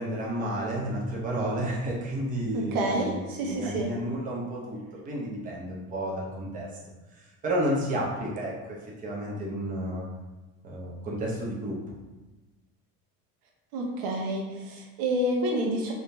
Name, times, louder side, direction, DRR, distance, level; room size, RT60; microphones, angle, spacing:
voice 1, 0.0-6.7 7.1-10.0 10.6-11.8, right 1 dB, 25° right, -5 dB, 0.8 m, -31 dB
voice 2, 2.5-3.9 13.7-15.9, right 1 dB, 75° right, -1 dB, 0.9 m, -28 dB
3.7 x 2.8 x 3.3 m, 1.1 s
cardioid pair, 155°, 34 cm